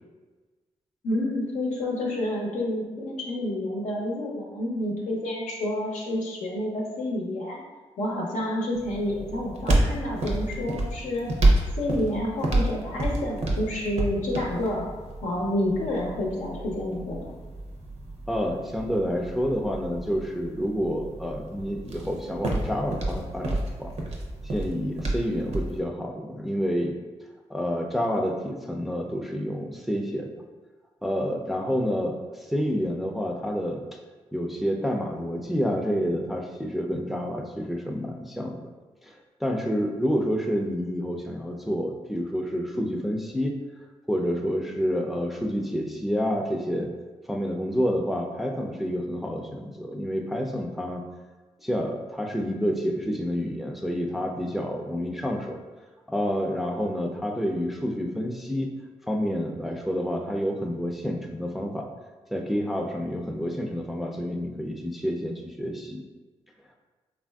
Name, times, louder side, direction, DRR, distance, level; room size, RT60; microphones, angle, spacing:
voice 1, 1.0-7.6 8.0-11.3 11.8-14.8 15.2-17.3, left 1 dB, 85° left, -2 dB, 0.6 m, -29 dB
sound 1, 8.7-25.8, right 2 dB, 60° right, 0.6 m, -29 dB
voice 2, 18.3-23.9 24.4-26.9 27.5-30.3 31.0-33.8 34.3-38.6 39.0-39.2 39.4-43.5 44.1-46.9 47.3-51.0 51.6-55.6 56.1-58.7 59.1-61.9 62.3-66.0, equal, ahead, 1 dB, 0.4 m, -28 dB
3.3 x 2.5 x 2.3 m, 1.3 s
supercardioid pair, 50°, 13 cm